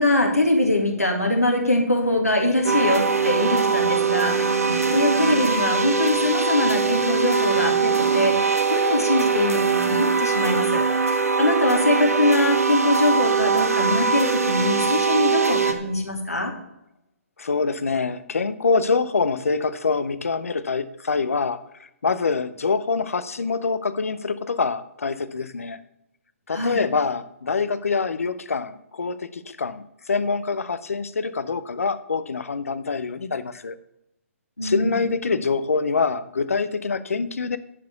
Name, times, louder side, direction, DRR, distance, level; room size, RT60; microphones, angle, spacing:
voice 1, 0.0-16.5 26.5-26.8 34.6-35.0, left 1 dB, 90° left, 1 dB, 2.2 m, -23 dB
sound 1, 2.6-15.7, right 5 dB, 75° right, 1.3 m, -22 dB
voice 2, 17.4-21.6 22.0-25.8 26.5-33.8 34.6-37.6, left 4 dB, 70° left, 13 dB, 0.7 m, -25 dB
11.0 x 4.8 x 6.6 m, 0.85 s
figure-of-eight pair, 130°, 8 cm